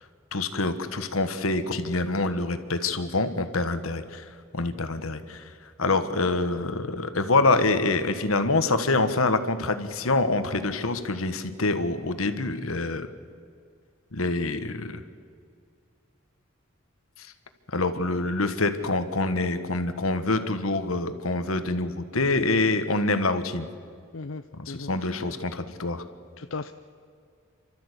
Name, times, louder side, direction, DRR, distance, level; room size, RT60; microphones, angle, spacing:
voice 1, 0.3-13.1 14.1-15.0 17.2-17.3 17.7-23.7 24.6-26.0, left 3 dB, 85° left, 9 dB, 1.5 m, -26 dB
voice 2, 24.1-24.9 26.4-26.7, left 3 dB, 65° left, 9 dB, 0.6 m, -36 dB
29.0 x 13.0 x 8.3 m, 2.2 s
head